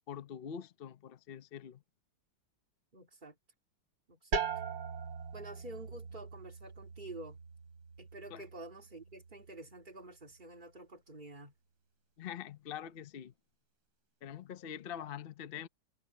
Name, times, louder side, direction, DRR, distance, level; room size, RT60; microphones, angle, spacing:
voice 1, 0.1-1.8 8.3-8.5 12.2-13.3 14.2-15.7, left 9 dB, 90° left, 0.5 m, -44 dB
voice 2, 2.9-3.4 4.1-4.4 5.3-7.4 8.0-11.5, right 2 dB, 20° right, 2.3 m, -49 dB
sound 1, 4.3-9.9, right 5 dB, 65° right, 3.5 m, -41 dB
omnidirectional pair, 2.3 m